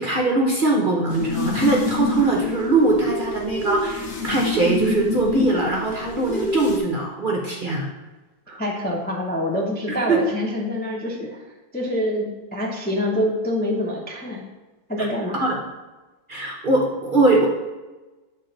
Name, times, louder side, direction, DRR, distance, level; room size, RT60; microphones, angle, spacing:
voice 1, 0.0-7.9 8.5-8.6 10.1-10.2 15.0-15.1 15.4-15.6 16.3-17.5, right 2 dB, 45° right, -1 dB, 0.7 m, -21 dB
sound 1, 1.1-6.8, left 2 dB, 70° left, 1.5 m, -27 dB
voice 2, 8.6-11.4 11.7-14.4 14.9-15.5, left 1 dB, 15° left, -2 dB, 0.3 m, -26 dB
7.9 x 3.7 x 3.9 m, 1.2 s
omnidirectional pair, 1.7 m